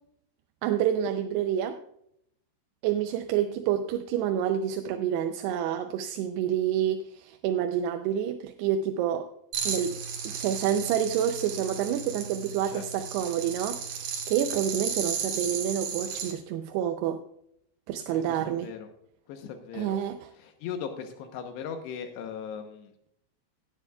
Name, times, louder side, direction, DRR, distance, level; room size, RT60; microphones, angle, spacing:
voice 1, 0.6-1.8 2.8-9.3 9.7-10.0 10.2-13.8 14.3-17.2 17.9-18.7 19.7-20.2, right 9 dB, 85° right, 6 dB, 2.7 m, -28 dB
sound 1, 9.5-16.3, right 6 dB, 65° right, 3.3 m, -34 dB
voice 2, 18.1-18.9 19.3-20.0 20.4-22.9, left 7 dB, 85° left, 5 dB, 3.1 m, -38 dB
17.0 x 9.7 x 2.3 m, 0.72 s
omnidirectional pair, 4.8 m